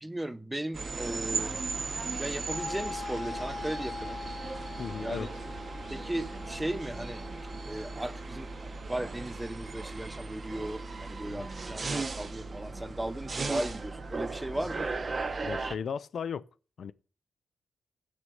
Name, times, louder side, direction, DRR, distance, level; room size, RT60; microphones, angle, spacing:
voice 1, 0.0-1.6 2.2-4.2 5.0-5.3 5.9-7.2 7.6-14.9, right 1 dB, 10° right, 0.6 m, -36 dB
sound 1, 0.7-15.8, right 3 dB, 30° right, 0.9 m, -37 dB
sound 2, 2.5-14.0, left 4 dB, 70° left, 1.3 m, -45 dB
voice 2, 4.8-5.3 11.3-11.5 15.4-16.4 16.8-16.9, left 7 dB, 55° left, 0.4 m, -36 dB
7.7 x 6.3 x 7.6 m
wide cardioid pair, 150°, 0 cm